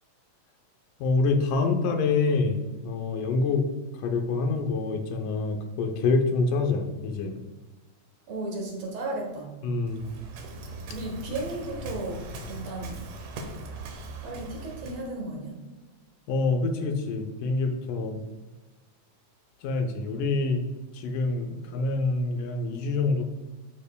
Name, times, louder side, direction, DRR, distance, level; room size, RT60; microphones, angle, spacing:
voice 1, 1.0-2.6 2.8-3.7 4.0-7.3 9.6-10.1 16.3-18.2 19.6-20.6 20.9-23.2, left 3 dB, 85° left, 5 dB, 2.4 m, -26 dB
voice 2, 8.3-9.7 10.9-13.0 14.2-15.6, right 2 dB, 60° right, 0 dB, 2.0 m, -35 dB
Waves surf, 9.9-15.1, right 1 dB, 80° right, 2.5 m, -39 dB
12.5 x 4.4 x 2.2 m, 1.2 s
omnidirectional pair, 3.7 m